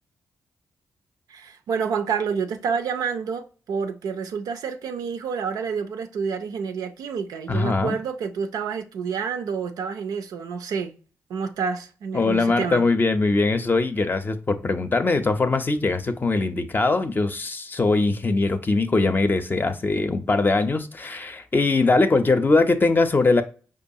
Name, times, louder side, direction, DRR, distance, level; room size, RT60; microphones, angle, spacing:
voice 1, 1.3-10.9 11.3-12.8, right 6 dB, 80° right, 0.4 m, -28 dB
voice 2, 7.5-8.0 12.1-23.4, left 3 dB, 30° left, 0.5 m, -21 dB
4.9 x 2.3 x 2.7 m
supercardioid pair, 55°, 6 cm